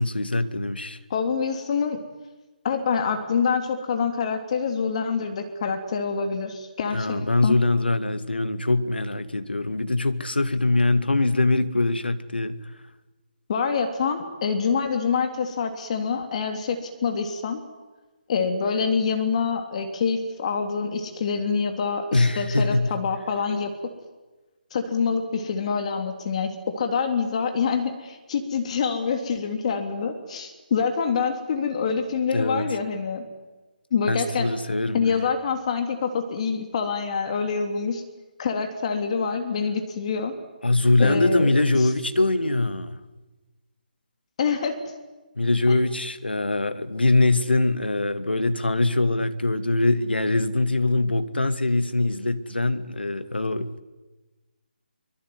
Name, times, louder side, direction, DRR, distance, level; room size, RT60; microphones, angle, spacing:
voice 1, 0.0-1.0 6.9-12.6 22.1-23.0 32.3-32.6 34.1-35.3 40.6-42.9 45.4-53.8, left 2 dB, 85° left, 2.3 m, -23 dB
voice 2, 1.1-2.0 2.6-7.6 13.5-17.6 18.3-23.7 24.7-33.2 33.9-34.5 34.9-38.0 38.4-40.3 41.0-41.5 41.8-41.9 44.4-44.8 45.7-45.8, left 5 dB, 40° left, 3.4 m, -26 dB
25.0 x 24.5 x 9.7 m
figure-of-eight pair, 150°, 5 cm